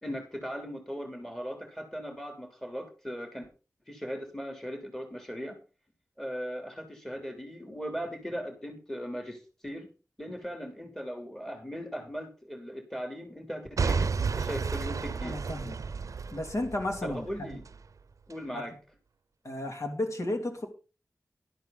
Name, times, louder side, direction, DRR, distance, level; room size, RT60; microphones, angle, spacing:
voice 1, 0.0-3.5 3.9-5.6 6.2-9.9 10.2-15.4 17.0-17.6 18.3-18.7, equal, 5° left, 4 dB, 3.1 m, -38 dB
Boom / Shatter / Crushing, 13.8-17.8 18.3-18.4, right 5 dB, 85° right, 0.6 m, -32 dB
voice 2, 15.2-15.7 16.3-17.6 18.5-18.7 19.4-20.7, left 1 dB, 70° left, 4 dB, 2.8 m, -33 dB
12.0 x 12.0 x 3.9 m, 0.34 s
cardioid pair, 50°, 5 cm